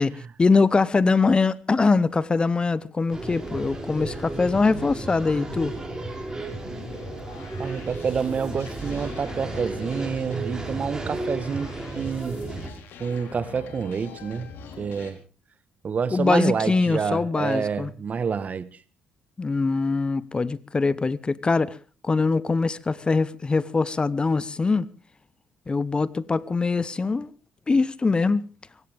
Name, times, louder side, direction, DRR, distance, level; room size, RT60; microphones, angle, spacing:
voice 1, 0.0-5.7 16.1-17.9 19.4-21.8 22.0-24.9 25.7-27.3 27.7-28.4, left 4 dB, 25° left, 0.8 m, -23 dB
sound 1, 3.1-12.7, right 2 dB, 15° right, 6.1 m, -34 dB
sound 2, 6.6-15.1, left 6 dB, 75° left, 4.0 m, -44 dB
voice 2, 7.6-12.4 13.0-14.5 14.8-15.2 15.8-18.7, right 6 dB, 45° right, 1.3 m, -28 dB
24.5 x 16.5 x 3.5 m
cardioid pair, 80°, 4 cm